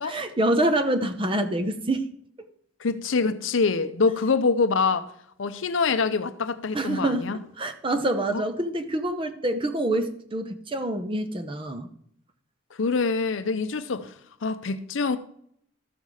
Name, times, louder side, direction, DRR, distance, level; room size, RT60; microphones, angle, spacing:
voice 1, 0.0-2.1 6.7-7.3 7.6-11.9, right 1 dB, 25° right, 0.7 m, -26 dB
voice 2, 2.8-5.1 5.4-7.4 8.3-8.4 12.8-14.1 14.4-15.2, left 4 dB, 70° left, 0.6 m, -25 dB
13.5 x 5.6 x 4.8 m
head